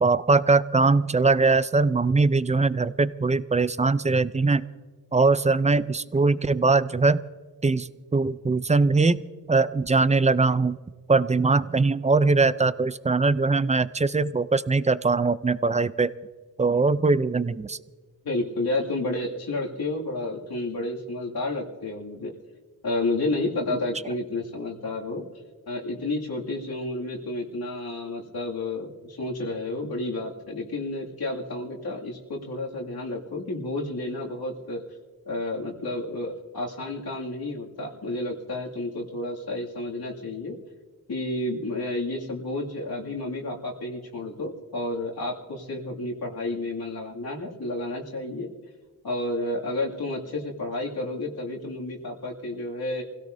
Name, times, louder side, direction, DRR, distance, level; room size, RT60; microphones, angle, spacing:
voice 1, 0.0-4.7 5.1-7.2 7.6-9.2 9.5-10.8 11.1-16.1 16.6-17.8, right 3 dB, 20° right, 16 dB, 0.4 m, -21 dB
voice 2, 18.2-22.3 22.8-25.3 25.7-34.8 35.3-40.6 41.1-48.5 49.0-53.0, left 2 dB, 75° left, -3 dB, 2.4 m, -31 dB
27.5 x 17.0 x 2.7 m, 1.4 s
wide cardioid pair, 105°, 37 cm